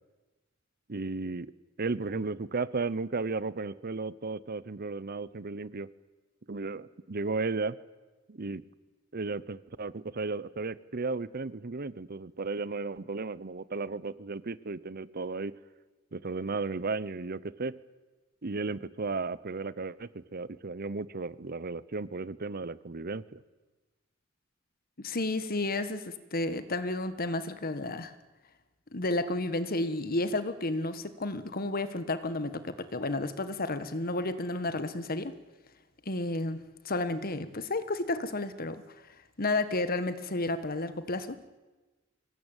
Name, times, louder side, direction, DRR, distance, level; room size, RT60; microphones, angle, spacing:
voice 1, 0.9-1.5 1.8-5.9 6.5-7.8 8.3-8.6 9.1-15.6 16.1-17.8 18.4-23.4, right 3 dB, 50° right, 18 dB, 0.8 m, -34 dB
voice 2, 25.0-28.1 28.9-35.3 36.0-38.8 39.4-41.4, left 2 dB, 45° left, 12 dB, 1.5 m, -32 dB
25.0 x 19.5 x 9.0 m, 1.2 s
head